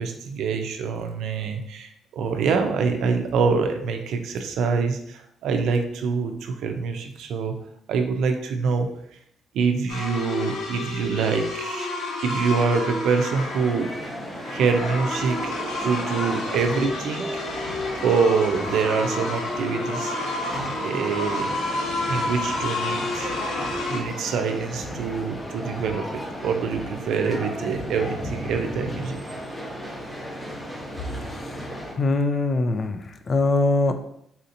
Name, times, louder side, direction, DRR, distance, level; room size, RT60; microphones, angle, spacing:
voice 1, 0.0-7.5 7.9-8.9 9.5-11.9 12.2-13.9 14.4-17.2 17.5-17.6 18.0-20.2 20.8-21.5 22.1-23.4 23.9-29.2, right 5 dB, 80° right, 5 dB, 0.4 m, -25 dB
sound 1, 9.9-24.0, left 2 dB, 85° left, 0.7 m, -30 dB
sound 2, 13.4-31.9, equal, 20° left, 1.0 m, -34 dB
voice 2, 31.3-33.0 33.3-33.9, left 2 dB, 40° left, 8 dB, 0.4 m, -23 dB
4.1 x 2.8 x 2.6 m, 0.72 s
cardioid pair, 90°, 0 cm